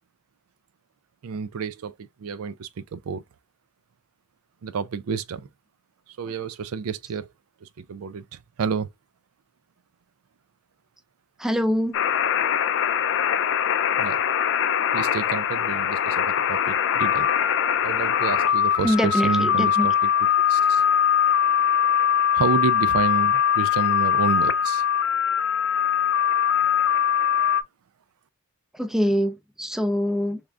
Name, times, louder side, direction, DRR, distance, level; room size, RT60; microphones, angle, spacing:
voice 1, 1.2-1.9 2.2-3.2 4.6-5.5 6.2-7.3 7.6-8.2 8.6-8.9 14.0-14.2 14.9-17.3 17.8-20.1 20.5-20.8 22.3-24.8, right 5 dB, 85° right, 0.4 m, -29 dB
voice 2, 11.4-12.0 18.8-19.9 28.7-30.4, equal, ahead, 0.4 m, -24 dB
sound 1, 11.9-27.6, left 8 dB, 60° left, 0.4 m, -22 dB
3.6 x 3.5 x 2.3 m
head